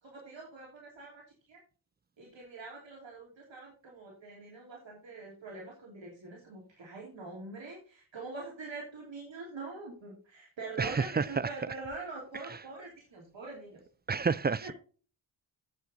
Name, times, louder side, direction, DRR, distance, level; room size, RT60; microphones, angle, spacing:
voice 1, 0.0-1.2 1.5-1.6 2.2-13.8 14.6-14.7, right 3 dB, 70° right, 3.1 m, -44 dB
voice 2, 10.8-11.2 14.1-14.7, right 5 dB, 25° right, 0.3 m, -29 dB
9.8 x 8.1 x 3.9 m
wide cardioid pair, 105°, 46 cm